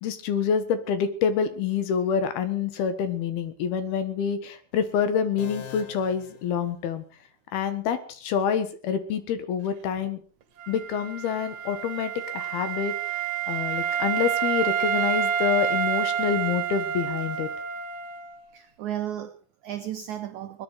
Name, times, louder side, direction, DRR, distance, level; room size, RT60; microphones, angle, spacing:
voice 1, 0.0-7.0 7.5-10.2 10.7-17.5, left 7 dB, 75° left, 10 dB, 3.3 m, -27 dB
sound 1, 5.4-7.3, left 9 dB, 55° left, 2.9 m, -44 dB
Wind instrument woodwind instrument, 10.6-18.3, right 9 dB, 60° right, 1.8 m, -28 dB
voice 2, 18.5-20.6, right 11 dB, 80° right, 8 dB, 1.7 m, -34 dB
21.0 x 11.0 x 4.8 m, 0.41 s
omnidirectional pair, 4.6 m